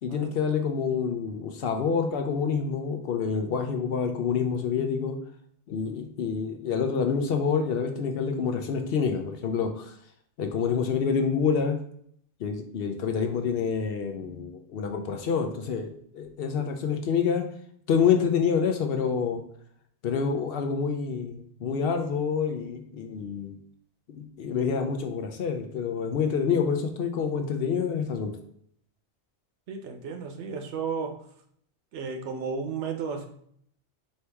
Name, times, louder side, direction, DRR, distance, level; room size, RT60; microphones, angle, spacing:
voice 1, 0.0-5.2 5.7-9.9 10.4-11.8 12.4-17.5 17.9-19.4 20.0-23.6 24.1-28.3, left 6 dB, 65° left, 5 dB, 0.7 m, -27 dB
voice 2, 29.7-31.2 31.9-33.3, right 5 dB, 85° right, 4 dB, 1.0 m, -33 dB
4.5 x 2.8 x 3.3 m, 0.66 s
omnidirectional pair, 1.2 m